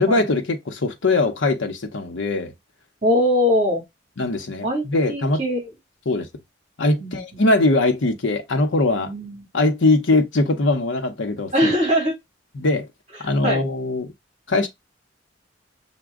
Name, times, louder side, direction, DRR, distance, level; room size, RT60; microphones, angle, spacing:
voice 1, 0.0-2.5 4.2-5.4 6.1-6.3 6.8-9.1 9.5-11.5 12.6-12.9 13.2-14.1 14.5-14.7, left 2 dB, 85° left, 0.8 m, -21 dB
voice 2, 3.0-3.8 4.6-5.7 7.0-7.2 9.0-9.5 11.5-12.2 13.1-13.6, equal, 35° right, 2.1 m, -22 dB
6.0 x 2.2 x 3.5 m
head